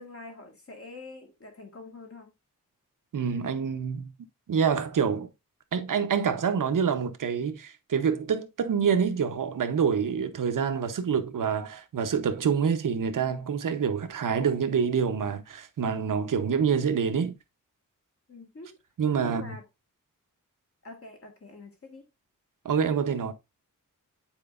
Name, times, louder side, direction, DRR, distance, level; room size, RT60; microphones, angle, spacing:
voice 1, 0.0-2.3 18.3-18.8 19.2-19.6 20.8-22.1, left 2 dB, 45° left, 1.9 m, -45 dB
voice 2, 3.1-4.1 4.5-5.3 5.7-17.3 19.0-19.5 22.6-23.3, right 6 dB, 70° right, 1.0 m, -26 dB
9.1 x 4.6 x 2.5 m
wide cardioid pair, 145°, 33 cm